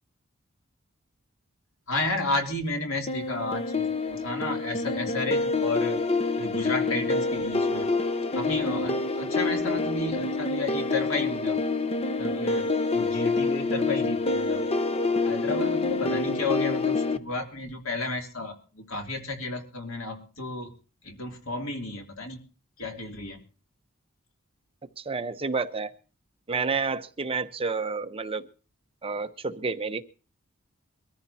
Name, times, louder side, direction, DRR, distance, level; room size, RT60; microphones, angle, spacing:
voice 1, 1.9-6.0 6.4-7.9 8.3-11.6 12.2-14.6 15.2-20.7 21.0-22.4 22.8-23.4, left 2 dB, 80° left, 3 dB, 3.0 m, -32 dB
sound 1, 3.1-17.2, left 3 dB, 30° left, 0.8 m, -27 dB
voice 2, 25.0-25.9 26.5-28.4 29.0-30.0, right 4 dB, 30° right, 9 dB, 0.8 m, -30 dB
24.0 x 14.0 x 2.8 m, 0.36 s
head